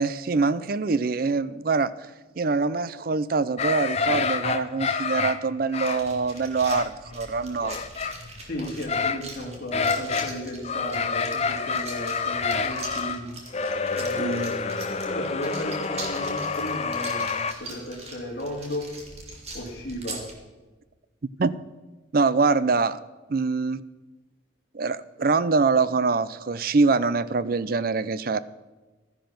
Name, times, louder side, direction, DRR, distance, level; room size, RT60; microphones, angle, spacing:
voice 1, 0.0-1.9 2.4-7.8 14.2-14.5 21.4-21.5 22.1-23.0 23.3-23.8 24.7-28.4, right 4 dB, 50° right, 16 dB, 0.4 m, -24 dB
sound 1, 3.6-9.2 9.5-10.4 10.6-17.5, left 5 dB, 35° left, 0.6 m, -28 dB
sound 2, 5.8-20.3, right 3 dB, 35° right, 2.1 m, -42 dB
voice 2, 8.4-13.3 13.9-14.8 15.1-18.9 19.5-20.2, equal, 50° left, -3 dB, 3.0 m, -34 dB
13.0 x 10.5 x 5.9 m, 1.2 s
head